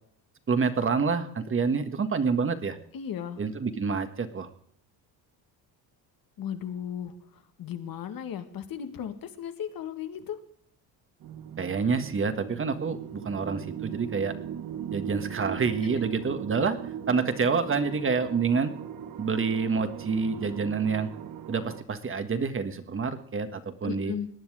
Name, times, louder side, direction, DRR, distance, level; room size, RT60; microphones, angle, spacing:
voice 1, 0.5-2.8 3.4-4.5 11.6-14.3 14.9-18.7 19.2-21.1 21.5-24.1, right 5 dB, 30° right, 9 dB, 1.6 m, -27 dB
voice 2, 2.9-3.4 6.4-10.4 23.8-24.3, left 9 dB, 55° left, 8 dB, 2.0 m, -36 dB
sound 1, 11.2-21.8, right 9 dB, 50° right, 1.4 m, -39 dB
18.5 x 10.0 x 4.9 m, 0.63 s
cardioid pair, 120°, 41 cm